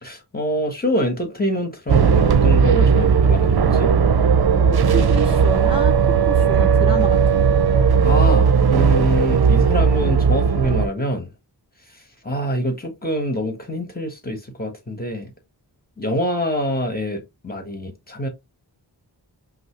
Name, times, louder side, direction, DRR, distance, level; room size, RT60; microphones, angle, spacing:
voice 1, 0.0-3.9 8.0-11.3 12.2-15.3 16.0-18.3, equal, 20° left, 1.4 m, -25 dB
sound 1, 1.9-10.9, right 6 dB, 60° right, 0.6 m, -16 dB
voice 2, 4.5-7.4, right 2 dB, 15° right, 0.5 m, -29 dB
5.4 x 2.0 x 3.1 m
wide cardioid pair, 50°, 43 cm